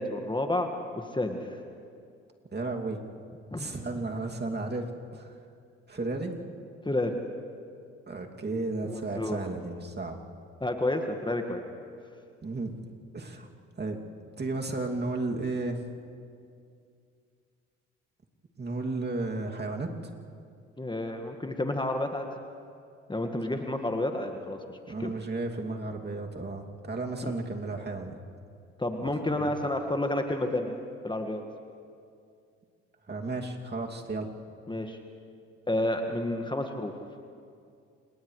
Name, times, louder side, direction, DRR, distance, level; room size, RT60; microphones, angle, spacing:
voice 1, 0.0-1.5 3.5-3.7 6.8-7.2 8.8-9.4 10.6-11.6 20.8-22.3 23.1-25.1 27.2-27.3 28.8-30.7 31.0-31.4 34.7-35.0 35.7-36.9, left 1 dB, 15° left, 4 dB, 1.8 m, -30 dB
voice 2, 2.5-3.0 3.6-5.3 5.9-6.4 8.1-10.2 12.4-12.7 13.1-13.5 13.8-14.0 14.4-15.8 18.6-19.9 24.9-28.2 29.3-29.5 33.1-34.3, right 2 dB, 30° right, 1 dB, 2.6 m, -33 dB
29.0 x 28.5 x 3.3 m, 2.4 s
hypercardioid pair, 55°, 35 cm